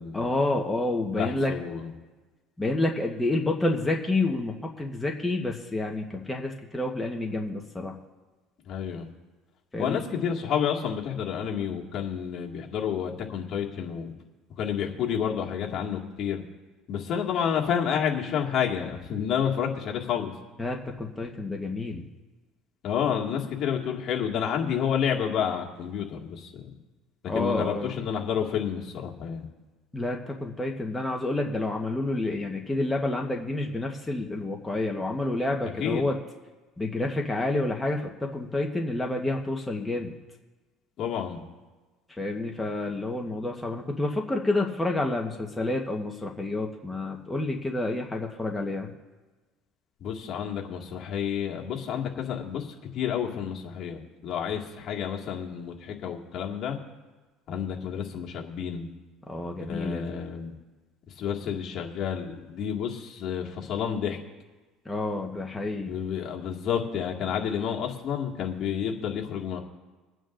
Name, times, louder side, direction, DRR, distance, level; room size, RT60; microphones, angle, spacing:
voice 1, 0.1-1.5 2.6-8.0 9.7-10.0 20.6-22.0 27.3-27.9 29.9-36.2 36.8-40.1 42.2-48.9 59.3-60.2 64.9-65.9, left 2 dB, 10° left, 0 dB, 1.2 m, -29 dB
voice 2, 1.0-1.9 8.7-9.0 9.8-14.1 14.6-16.4 16.9-20.3 22.8-26.7 27.3-29.5 35.8-36.1 41.0-41.4 50.0-52.7 52.9-56.8 57.5-58.9 59.6-60.5 61.2-64.2 65.9-69.6, left 8 dB, 55° left, 0 dB, 2.0 m, -30 dB
27.0 x 9.1 x 2.6 m, 1.3 s
supercardioid pair, 105°, 0 cm